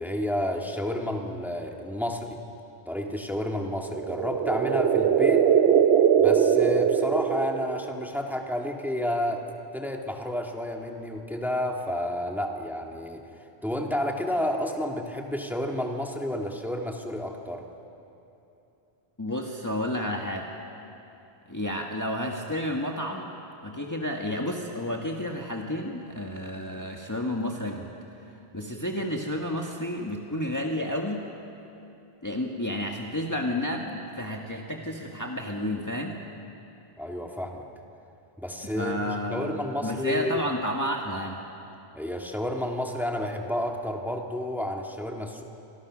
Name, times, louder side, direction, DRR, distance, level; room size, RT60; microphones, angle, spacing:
voice 1, 0.0-2.4 2.9-5.4 6.2-9.4 9.7-13.2 13.6-17.6 37.0-37.6 38.4-40.4 41.9-45.4, left 1 dB, ahead, 1 dB, 2.0 m, -30 dB
sound 1, 3.8-8.0, right 8 dB, 75° right, 1.1 m, -21 dB
voice 2, 19.2-20.5 21.5-23.3 23.6-27.9 28.5-31.3 32.2-36.2 38.6-39.5 39.8-41.4, left 1 dB, 15° left, 0 dB, 1.6 m, -31 dB
29.5 x 25.0 x 6.3 m, 2.8 s
omnidirectional pair, 1.1 m